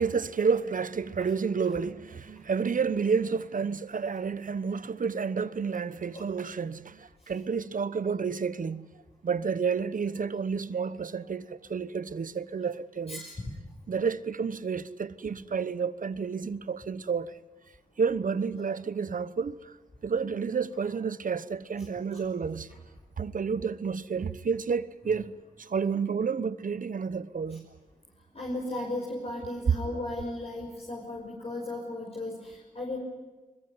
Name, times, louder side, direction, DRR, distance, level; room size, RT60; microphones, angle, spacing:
voice 1, 0.0-8.8 9.2-13.2 13.9-17.4 18.0-19.7 20.0-22.7 23.2-25.3 25.6-27.6, right 5 dB, 65° right, 1.0 m, -30 dB
voice 2, 28.3-33.0, left 1 dB, 45° left, 6.0 m, -36 dB
23.0 x 21.5 x 9.6 m
wide cardioid pair, 70°, 15 cm